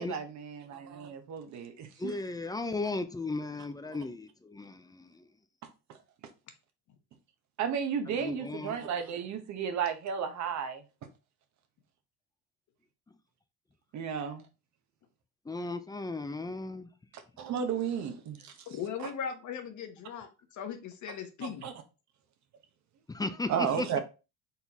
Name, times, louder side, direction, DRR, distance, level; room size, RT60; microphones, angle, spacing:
voice 1, 0.0-2.1 7.6-10.8 13.9-14.4 17.4-18.5 21.4-21.7 23.5-24.0, right 7 dB, 55° right, 1.0 m, -33 dB
voice 2, 2.0-5.3 8.1-8.9 15.5-16.9 23.1-24.0, left 3 dB, 10° left, 0.5 m, -36 dB
voice 3, 18.7-21.6, left 7 dB, 55° left, 1.1 m, -38 dB
4.1 x 3.8 x 2.9 m
supercardioid pair, 90°, 34 cm